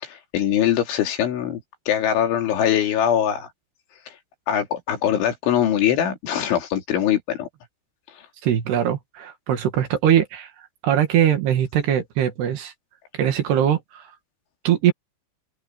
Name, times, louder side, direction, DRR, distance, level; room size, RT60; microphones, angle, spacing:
voice 1, 0.0-1.6 1.9-3.5 4.5-7.5, left 10 dB, 85° left, 5.3 m, -22 dB
voice 2, 8.4-10.5 10.8-12.7 13.1-14.0 14.7-14.9, right 10 dB, 65° right, 3.9 m, -21 dB
open air
omnidirectional pair, 5.3 m